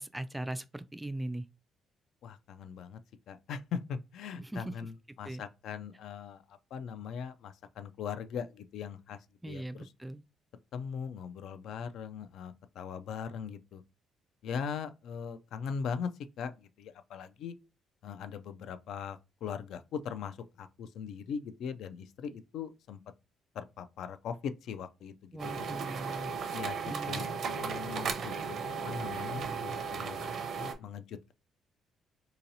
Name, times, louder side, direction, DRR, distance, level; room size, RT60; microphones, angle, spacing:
voice 1, 0.0-1.4 4.5-4.6 5.3-5.4 9.4-10.2 25.3-26.3 26.8-27.2, right 1 dB, 10° right, 0.3 m, -39 dB
voice 2, 2.2-3.0 3.3-9.9 10.7-13.8 14.4-16.1 16.4-17.5 18.0-23.0 23.5-25.8 26.5-27.3 27.6-28.6 28.8-30.2 30.6-31.3, left 7 dB, 75° left, 0.3 m, -40 dB
sound 1, 25.4-30.7, right 5 dB, 60° right, 0.5 m, -36 dB
3.8 x 2.8 x 2.6 m
cardioid pair, 80°, 0 cm